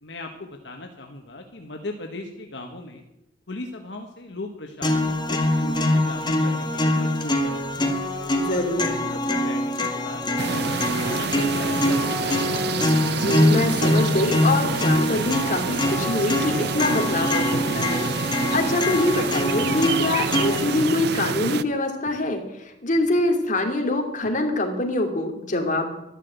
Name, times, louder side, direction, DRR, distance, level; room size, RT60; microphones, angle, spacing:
voice 1, 0.0-3.0 3.5-7.9 8.3-10.7 11.0-12.5, left 2 dB, 70° left, 3 dB, 1.5 m, -38 dB
sound 1, 4.8-20.8, left 1 dB, 25° left, 1.9 m, -24 dB
voice 2, 8.4-8.8 13.1-25.9, left 2 dB, 45° left, 3 dB, 2.7 m, -24 dB
sound 2, 10.4-21.6, right 6 dB, 65° right, 0.6 m, -28 dB
12.5 x 12.0 x 8.1 m, 0.87 s
head